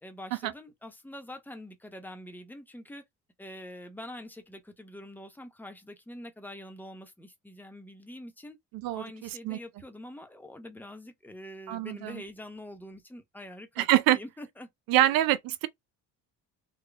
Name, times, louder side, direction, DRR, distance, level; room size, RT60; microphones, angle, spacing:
voice 1, 0.0-3.0 3.4-8.6 8.9-13.9 14.1-14.7 15.0-15.1, left 1 dB, 5° left, 0.9 m, -45 dB
voice 2, 8.7-9.6 11.7-12.2 13.8-14.2 14.9-15.7, right 14 dB, 80° right, 0.7 m, -25 dB
3.9 x 2.3 x 3.3 m
cardioid pair, 115°, 34 cm